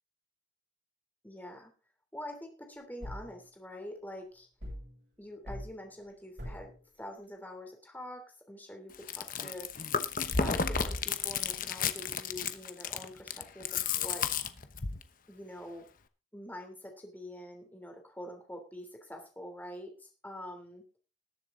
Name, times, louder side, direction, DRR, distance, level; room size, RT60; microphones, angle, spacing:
voice 1, 1.2-1.7 2.1-4.5 5.2-6.7 7.0-9.7 10.2-14.5 15.3-15.9 16.3-20.8, left 1 dB, 10° left, 3 dB, 3.1 m, -45 dB
sound 1, 3.0-3.3 4.6-4.9 5.5-5.7 6.4-6.7, equal, 65° right, 7.9 m, -41 dB
Chewing mastication, 8.9-15.0, left 6 dB, 45° left, 1.0 m, -32 dB
20.0 x 7.5 x 3.8 m, 0.33 s
head